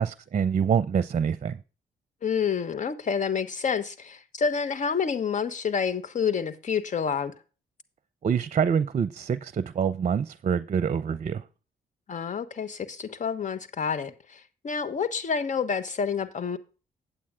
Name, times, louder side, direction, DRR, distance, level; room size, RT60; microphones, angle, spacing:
voice 1, 0.0-1.6 8.2-11.4, right 7 dB, 45° right, 0.6 m, -26 dB
voice 2, 2.2-7.3 12.1-16.6, left 6 dB, 50° left, 1.3 m, -28 dB
8.6 x 8.5 x 3.7 m
hypercardioid pair, 50°, 17 cm